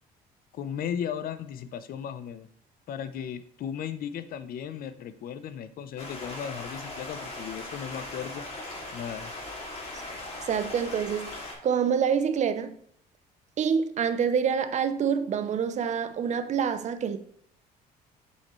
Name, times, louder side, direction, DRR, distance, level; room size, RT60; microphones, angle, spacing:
voice 1, 0.5-2.5 2.9-8.4 8.9-9.3, left 8 dB, 60° left, 0.7 m, -36 dB
Stream, 6.0-11.5, left 2 dB, 35° left, 2.4 m, -39 dB
voice 2, 10.5-11.3 11.6-12.8 13.6-17.2, right 7 dB, 45° right, 0.6 m, -26 dB
7.3 x 5.7 x 3.1 m
cardioid pair, 110°, 17 cm